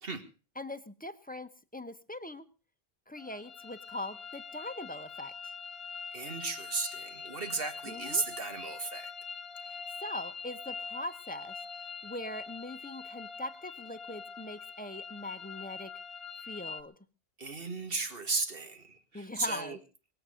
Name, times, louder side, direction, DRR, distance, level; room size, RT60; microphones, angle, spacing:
voice 1, 0.6-2.5 3.1-5.3 7.9-8.2 9.6-11.6 12.0-15.9 16.4-16.9 19.1-19.8, left 1 dB, 10° left, 10 dB, 0.9 m, -41 dB
sound 1, 3.2-16.8, left 5 dB, 75° left, 1.2 m, -44 dB
voice 2, 6.1-9.1 17.4-19.8, right 3 dB, 65° right, 8 dB, 2.1 m, -35 dB
23.0 x 8.0 x 6.4 m, 0.36 s
omnidirectional pair, 1.0 m